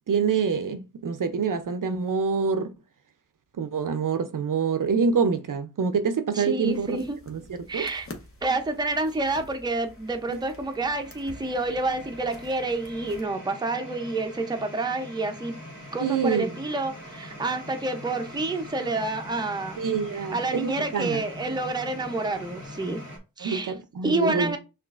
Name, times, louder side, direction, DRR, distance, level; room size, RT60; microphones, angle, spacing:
voice 1, 0.1-2.7 3.6-7.0 7.3-7.9 10.3-10.4 16.0-16.6 19.8-21.2 23.4-24.6, right 5 dB, 60° right, 0.5 m, -26 dB
voice 2, 6.3-7.2 7.7-8.1 8.4-15.6 15.9-19.8 20.3-23.0 23.4-23.7 24.0-24.6, right 2 dB, 10° right, 0.5 m, -28 dB
sound 1, 6.6-13.3, left 2 dB, 40° left, 0.8 m, -48 dB
sound 2, 8.7-23.2, equal, 55° left, 1.6 m, -43 dB
6.0 x 2.4 x 2.4 m
wide cardioid pair, 95°, 35 cm